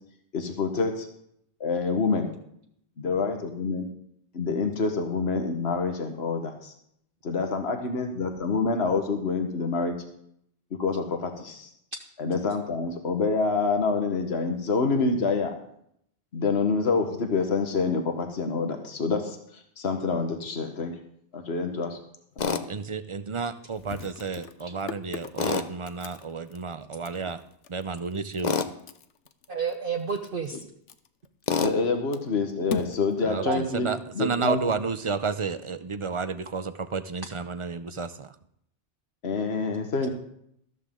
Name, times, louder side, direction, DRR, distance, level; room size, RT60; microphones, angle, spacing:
voice 1, 0.3-1.1 1.6-2.3 3.0-3.9 4.3-6.7 7.2-9.9 10.8-11.7 12.2-15.5 16.3-19.4 19.8-20.9 21.3-22.0 22.4-22.7 31.6-33.9 34.1-34.7 39.2-40.1, left 4 dB, 65° left, 5 dB, 1.6 m, -27 dB
sound 1, 22.3-22.4 22.8-22.9 23.7-31.9 32.1-34.3, left 5 dB, 90° left, 1.1 m, -41 dB
Tools, 22.4-22.6 25.4-25.7 28.4-28.7 31.5-31.8, left 5 dB, 45° left, 0.8 m, -26 dB
voice 2, 22.7-27.4 27.7-28.6 33.2-38.4, right 5 dB, 35° right, 12 dB, 0.6 m, -31 dB
voice 3, 29.5-30.6 33.4-33.6, right 5 dB, 50° right, 3 dB, 1.1 m, -30 dB
13.5 x 13.5 x 3.8 m, 0.70 s
omnidirectional pair, 1.2 m